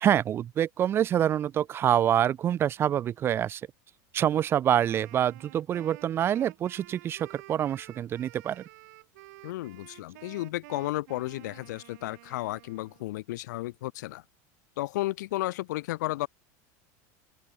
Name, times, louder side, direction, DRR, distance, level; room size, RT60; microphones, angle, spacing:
voice 1, 0.0-3.6 4.1-8.6, right 10 dB, 25° right, 0.5 m, -26 dB
Wind instrument woodwind instrument, 4.7-13.1, right 22 dB, 70° right, 3.9 m, -51 dB
voice 2, 9.4-14.2 14.8-16.3, left 17 dB, 85° left, 1.7 m, -33 dB
open air
supercardioid pair, 155°, 9 cm